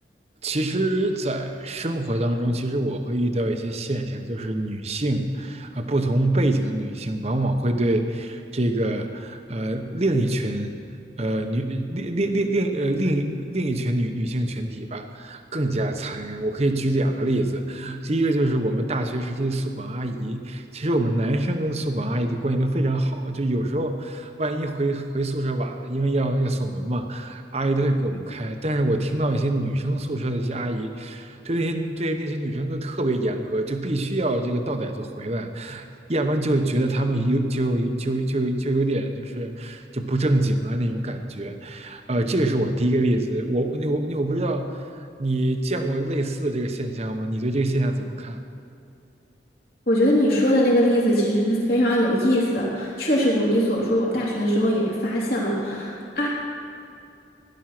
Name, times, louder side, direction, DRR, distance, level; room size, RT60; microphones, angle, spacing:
voice 1, 0.4-10.7 11.2-48.4, right 1 dB, 35° right, 6 dB, 1.0 m, -25 dB
voice 2, 49.9-56.3, equal, 55° left, -5 dB, 3.4 m, -21 dB
17.0 x 11.0 x 6.0 m, 2.5 s
head